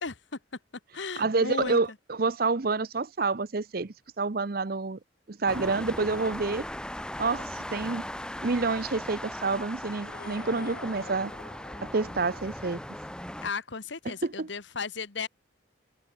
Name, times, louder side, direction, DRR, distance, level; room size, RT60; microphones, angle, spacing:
voice 1, 0.0-0.4 0.9-2.0 13.4-15.3, left 4 dB, 75° left, 1.3 m, -35 dB
voice 2, 1.2-1.9 2.2-5.0 5.3-6.6 7.2-8.0 8.4-11.3 11.8-12.8 14.1-14.5, right 3 dB, 50° right, 0.7 m, -28 dB
sound 1, 5.5-13.5, left 1 dB, 5° left, 1.7 m, -38 dB
Sci-Fi Whoosh, 9.9-12.9, left 3 dB, 45° left, 1.9 m, -48 dB
head